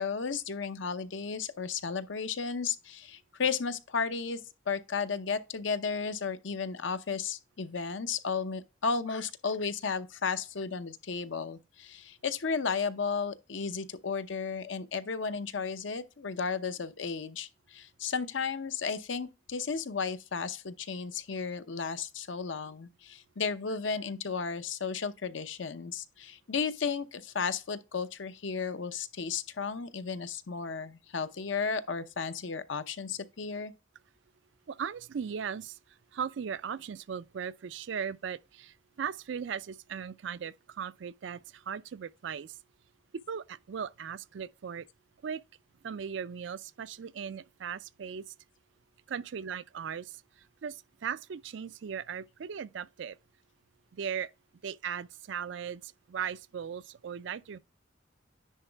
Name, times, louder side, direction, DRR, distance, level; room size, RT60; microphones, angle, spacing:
voice 1, 0.0-4.4 4.7-33.7, left 5 dB, 75° left, 0.7 m, -34 dB
voice 2, 34.7-35.8 36.1-42.6 43.3-44.9 45.2-45.4 45.8-48.3 49.1-50.2 50.6-53.2 53.9-54.3 54.6-57.6, right 7 dB, 70° right, 0.4 m, -38 dB
10.0 x 3.9 x 3.4 m
head